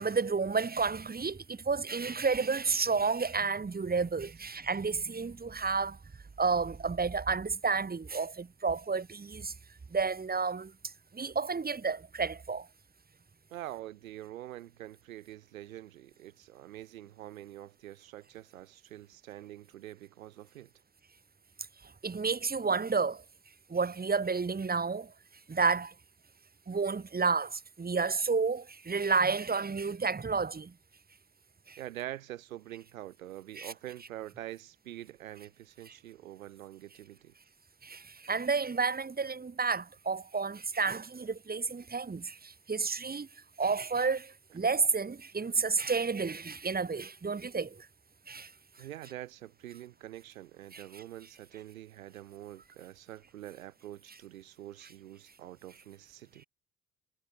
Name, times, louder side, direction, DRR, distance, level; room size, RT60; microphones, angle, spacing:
voice 1, 0.0-6.0 6.4-9.5 9.9-10.7 11.1-12.7 22.0-23.2 23.7-25.1 25.5-25.9 26.7-30.7 31.7-31.8 33.6-33.7 35.9-36.0 37.8-43.3 43.6-47.9 48.3-48.5 50.7-51.0, right 4 dB, 20° right, 3.1 m, -31 dB
voice 2, 13.5-20.7 31.8-37.3 48.8-56.4, right 13 dB, 85° right, 2.6 m, -45 dB
hypercardioid pair, 60°, 40 cm